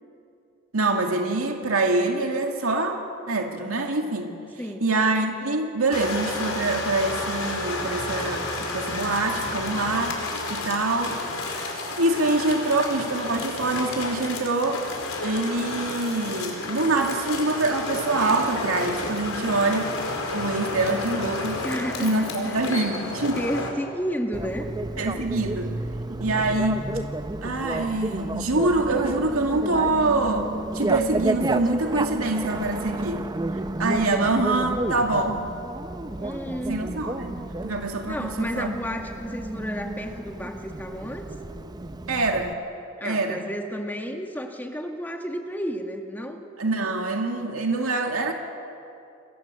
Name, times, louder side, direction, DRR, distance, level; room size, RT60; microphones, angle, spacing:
voice 1, 0.7-4.3 4.8-10.2 10.5-11.2 12.0-14.9 15.2-19.9 20.3-21.6 22.0-23.4 25.0-25.7 26.2-26.9 27.4-33.2 33.8-35.5 36.7-38.7 42.1-42.6 43.0-43.4 46.6-48.3, right 2 dB, 85° right, 3 dB, 2.4 m, -25 dB
sound 1, 5.9-23.7, left 2 dB, 80° left, 4.7 m, -31 dB
voice 2, 21.6-22.9 23.4-24.7 36.2-36.8 38.1-41.3 43.0-46.4, equal, 10° left, 3 dB, 1.9 m, -32 dB
Bicycle, 24.3-42.5, right 2 dB, 20° right, 0.6 m, -31 dB
28.0 x 21.5 x 7.6 m, 2.6 s
head